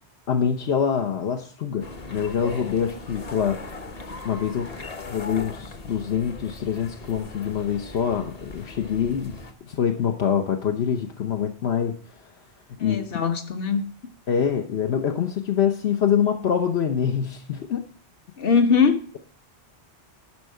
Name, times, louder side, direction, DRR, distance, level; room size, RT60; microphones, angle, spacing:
voice 1, 0.3-3.6 4.2-9.4 9.7-12.3 12.8-13.1 14.3-17.9, left 8 dB, 75° left, 5 dB, 1.1 m, -25 dB
sound 1, 1.8-9.5, left 3 dB, 40° left, 1.0 m, -39 dB
voice 2, 12.8-13.8 18.4-19.0, left 5 dB, 60° left, 7 dB, 1.4 m, -21 dB
12.0 x 4.6 x 7.5 m, 0.43 s
omnidirectional pair, 1.1 m